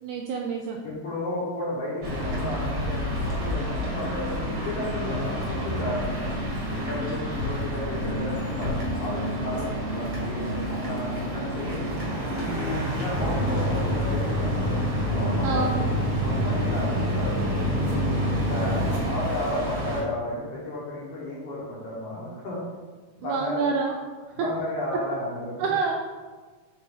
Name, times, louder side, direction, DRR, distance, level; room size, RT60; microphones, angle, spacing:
voice 1, 0.0-0.8 15.4-15.9 23.2-24.0 24.4-24.5 25.6-25.9, right 5 dB, 85° right, 1 dB, 1.7 m, -27 dB
voice 2, 0.8-6.3 6.7-11.8 12.3-14.7 15.1-15.7 16.2-18.0 18.3-22.6 23.2-23.7 24.3-25.7, left 1 dB, 60° left, -6 dB, 1.7 m, -33 dB
sound 1, 2.0-20.0, equal, 50° right, 2.3 m, -30 dB
sound 2, 13.1-19.0, left 1 dB, 20° left, 1.3 m, -27 dB
5.5 x 5.3 x 3.8 m, 1.4 s
omnidirectional pair, 3.9 m